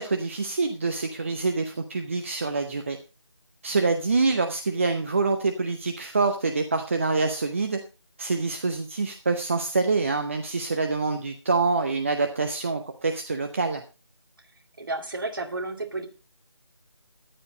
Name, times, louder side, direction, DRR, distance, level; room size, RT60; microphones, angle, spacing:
voice 1, 0.0-3.0 3.6-7.8 8.2-13.8, right 3 dB, 25° right, 7 dB, 0.8 m, -26 dB
voice 2, 14.8-16.1, right 2 dB, 45° right, 5 dB, 2.3 m, -32 dB
14.0 x 11.0 x 3.9 m, 0.31 s
figure-of-eight pair, 160°, 15 cm